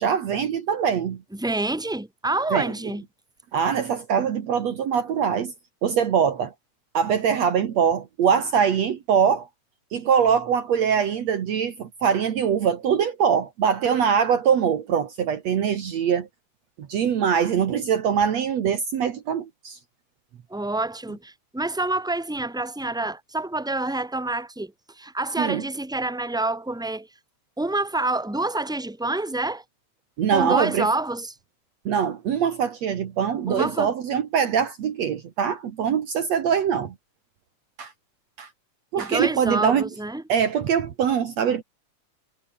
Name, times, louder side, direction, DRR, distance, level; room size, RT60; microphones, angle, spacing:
voice 1, 0.0-1.2 2.5-2.7 3.5-5.5 5.8-6.5 6.9-9.5 9.9-16.3 16.8-19.8 25.4-25.6 30.2-30.9 31.9-36.9 37.8-37.9 38.4-38.5 38.9-39.8 40.3-41.6, right 7 dB, 60° right, 2.7 m, -23 dB
voice 2, 1.3-3.0 20.5-27.1 27.6-29.6 30.3-31.3 33.5-33.9 39.0-40.2, right 2 dB, ahead, 1.0 m, -27 dB
omnidirectional pair, 3.5 m